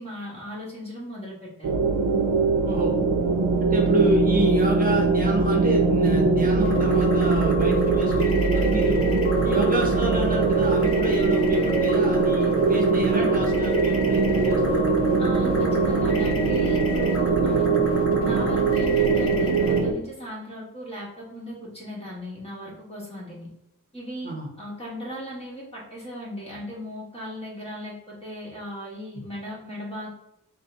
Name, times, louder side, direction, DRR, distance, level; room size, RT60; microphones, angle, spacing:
voice 1, 0.0-1.8 3.9-4.1 9.4-9.6 15.2-17.9 18.2-23.5 23.9-30.1, equal, 20° left, -5 dB, 1.5 m, -37 dB
sound 1, 1.6-19.9, right 3 dB, 70° right, 0.6 m, -21 dB
voice 2, 2.6-3.0 3.6-9.0 9.4-14.9 24.2-24.5, right 1 dB, 25° right, 0 dB, 1.0 m, -29 dB
sound 2, 6.6-19.8, left 3 dB, 45° left, 0.8 m, -35 dB
4.1 x 2.2 x 3.8 m, 0.82 s
wide cardioid pair, 130°, 32 cm